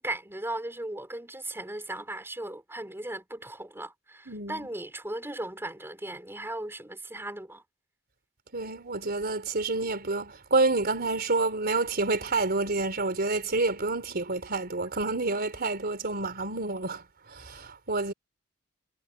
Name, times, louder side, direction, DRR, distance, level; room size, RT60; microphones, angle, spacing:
voice 1, 0.0-7.6, right 1 dB, 10° right, 5.6 m, -37 dB
voice 2, 4.3-4.7 8.5-18.1, right 3 dB, 45° right, 4.2 m, -28 dB
head